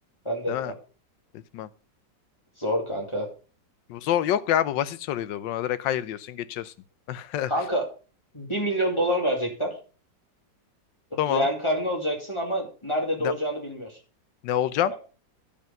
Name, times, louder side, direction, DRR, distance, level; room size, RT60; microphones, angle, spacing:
voice 1, 0.2-0.7 2.6-3.3 7.5-7.9 8.3-9.8 11.1-14.0 14.9-15.0, equal, 15° left, 2.4 m, -27 dB
voice 2, 3.9-6.7 7.1-7.5 11.2-11.5 13.2-13.3 14.4-14.9, left 11 dB, 90° left, 1.3 m, -26 dB
11.5 x 5.3 x 5.2 m
omnidirectional pair, 1.9 m